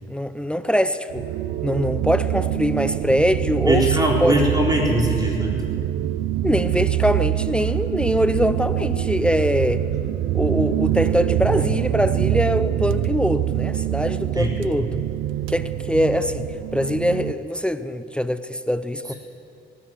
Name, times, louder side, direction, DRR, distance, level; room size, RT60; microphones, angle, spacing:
voice 1, 0.1-1.2 1.6-3.8 4.2-4.4 6.4-9.8 10.3-14.9 15.5-19.1, equal, 5° left, 12 dB, 0.6 m, -23 dB
sound 1, 1.1-17.3, right 13 dB, 90° right, 0.5 m, -24 dB
voice 2, 3.6-5.6 14.3-14.6, equal, 20° right, -2 dB, 3.9 m, -21 dB
18.0 x 10.0 x 7.7 m, 2.5 s
cardioid pair, 90°, 20 cm